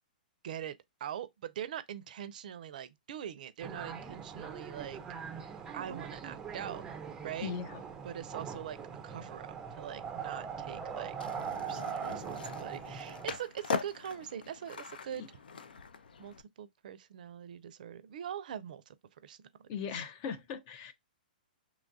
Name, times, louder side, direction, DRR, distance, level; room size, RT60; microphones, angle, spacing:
voice 1, 1.0-5.0 5.4-6.8 7.2-7.5 8.0-8.8 9.0-11.1 11.6-15.4 16.2-18.9 19.2-19.4, right 10 dB, 65° right, 0.5 m, -42 dB
sound 1, 3.6-13.4, right 6 dB, 15° right, 0.4 m, -41 dB
voice 2, 7.4-7.8 15.2-15.3 19.7-20.9, left 7 dB, 40° left, 0.6 m, -39 dB
Skateboard, 11.2-16.4, left 5 dB, 85° left, 0.4 m, -41 dB
3.0 x 2.3 x 2.6 m
hypercardioid pair, 140°, 5 cm